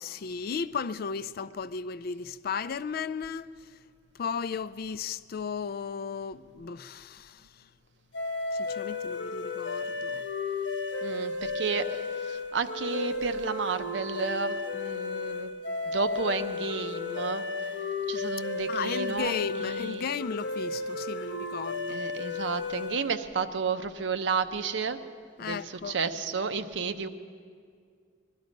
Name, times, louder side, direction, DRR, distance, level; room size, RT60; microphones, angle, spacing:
voice 1, 0.0-3.8 4.1-7.7 8.5-10.2 18.7-22.0 25.4-26.0, left 6 dB, 55° left, 0.4 m, -35 dB
sound 1, 8.1-23.2, left 3 dB, 85° left, 1.1 m, -34 dB
voice 2, 11.0-15.5 15.9-17.4 18.1-20.0 21.9-25.0 25.4-27.1, right 4 dB, 90° right, 0.7 m, -32 dB
22.0 x 12.0 x 5.2 m
head